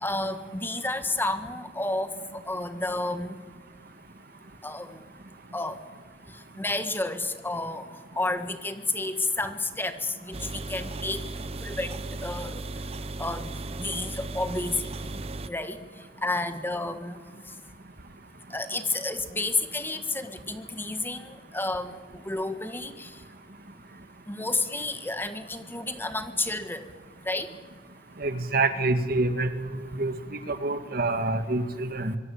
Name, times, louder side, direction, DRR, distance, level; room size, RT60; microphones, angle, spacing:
voice 1, 0.0-2.1 2.5-3.4 4.6-5.0 5.5-5.8 6.6-7.8 8.2-12.6 13.2-13.5 13.8-14.9 15.5-15.8 16.2-17.1 18.5-22.0 22.3-23.1 24.3-26.8 27.3-27.5, left 2 dB, 10° left, 8 dB, 1.7 m, -31 dB
sound 1, 10.3-15.5, right 2 dB, 35° right, 0.8 m, -36 dB
voice 2, 28.2-32.2, right 2 dB, 55° right, 9 dB, 1.9 m, -27 dB
25.0 x 22.5 x 8.7 m, 1.4 s
head